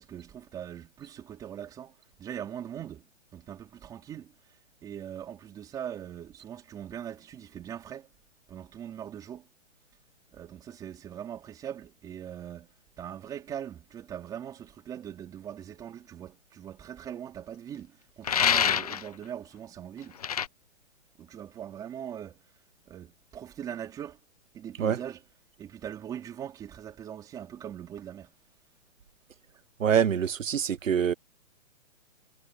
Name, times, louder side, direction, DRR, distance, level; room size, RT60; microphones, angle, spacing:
voice 1, 0.0-4.3 4.8-8.1 8.5-9.5 10.3-12.7 13.0-20.2 21.2-22.4 22.9-24.2 24.5-25.2 25.6-28.3, right 9 dB, 10° right, 3.8 m, -41 dB
sound 1, 18.2-19.1 20.2-20.5, left 8 dB, 30° left, 0.8 m, -25 dB
voice 2, 29.8-31.1, right 8 dB, 80° right, 1.2 m, -25 dB
hypercardioid pair, 170°, 39 cm